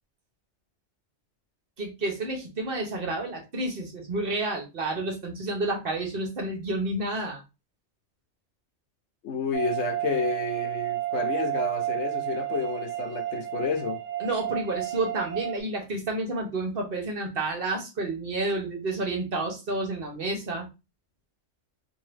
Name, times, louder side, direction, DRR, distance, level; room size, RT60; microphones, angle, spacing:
voice 1, 1.8-7.4 14.2-20.7, right 2 dB, 55° right, 1.1 m, -30 dB
voice 2, 9.2-14.0, left 5 dB, 80° left, 1.0 m, -30 dB
sound 1, 9.5-15.6, right 14 dB, 85° right, 0.9 m, -31 dB
2.7 x 2.6 x 3.3 m
omnidirectional pair, 1.2 m